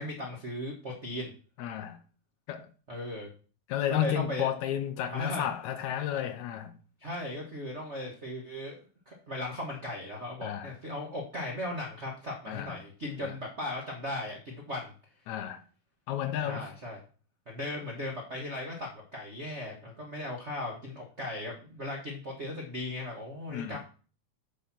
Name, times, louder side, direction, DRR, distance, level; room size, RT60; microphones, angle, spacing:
voice 1, 0.0-1.3 2.9-3.3 3.9-4.5 5.1-5.5 7.0-14.9 16.4-17.0 17.5-23.8, left 1 dB, 50° right, 0.8 m, -37 dB
voice 2, 1.6-2.0 2.5-2.7 3.7-6.8 10.4-10.7 12.5-12.8 13.2-13.3 15.3-15.6 16.1-16.6 23.5-23.8, left 10 dB, 75° left, 2.0 m, -32 dB
8.6 x 4.3 x 5.9 m
omnidirectional pair, 3.5 m